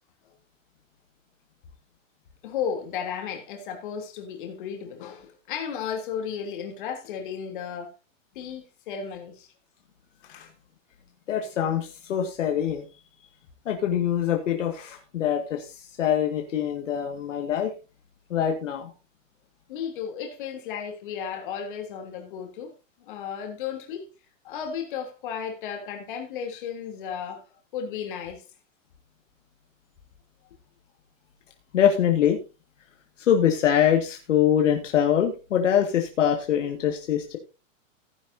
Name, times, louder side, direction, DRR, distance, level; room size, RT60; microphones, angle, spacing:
voice 1, 2.4-7.9 8.3-9.5 10.2-10.5 19.7-22.7 23.1-24.1 24.4-27.4 27.7-28.4, left 7 dB, 40° left, 3.2 m, -34 dB
voice 2, 11.3-12.9 13.7-17.7 18.3-18.9 31.7-32.4 33.2-37.4, left 9 dB, 65° left, 2.1 m, -24 dB
16.0 x 10.0 x 2.8 m
hypercardioid pair, 175°, 39 cm